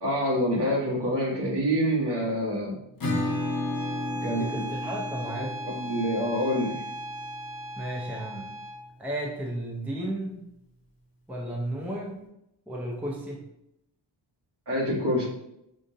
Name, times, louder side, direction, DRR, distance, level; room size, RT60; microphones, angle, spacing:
voice 1, 0.0-2.8 4.2-4.7 5.7-6.8 14.7-15.3, equal, 60° right, -4 dB, 1.4 m, -26 dB
Acoustic guitar / Strum, 3.0-8.4, left 1 dB, 50° left, 0.8 m, -34 dB
Bowed string instrument, 3.2-8.8, right 1 dB, 25° left, 1.5 m, -38 dB
voice 2, 4.2-5.6 7.8-8.5 9.0-10.4 11.3-12.2 12.7-13.4, right 1 dB, 5° right, -2 dB, 0.5 m, -33 dB
5.2 x 2.5 x 2.6 m, 0.82 s
wide cardioid pair, 115°, 46 cm